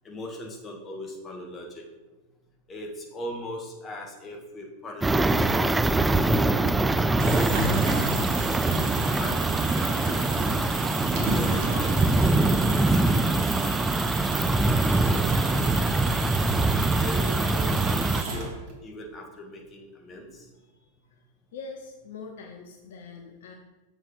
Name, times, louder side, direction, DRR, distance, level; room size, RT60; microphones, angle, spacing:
voice 1, 0.0-1.8 2.7-5.5 5.9-6.7 7.2-8.0 9.1-9.4 9.6-10.3 11.3-13.7 14.8-16.0 17.0-18.5 18.8-20.5, equal, 25° left, 1 dB, 1.6 m, -39 dB
sound 1, 5.0-18.2, right 2 dB, 10° right, 0.3 m, -23 dB
sound 2, 7.0-18.8, right 3 dB, 45° right, 1.5 m, -33 dB
voice 2, 21.5-23.5, left 4 dB, 60° left, 3 dB, 0.7 m, -42 dB
6.9 x 4.9 x 5.2 m, 1.1 s
figure-of-eight pair, 90°, 0 cm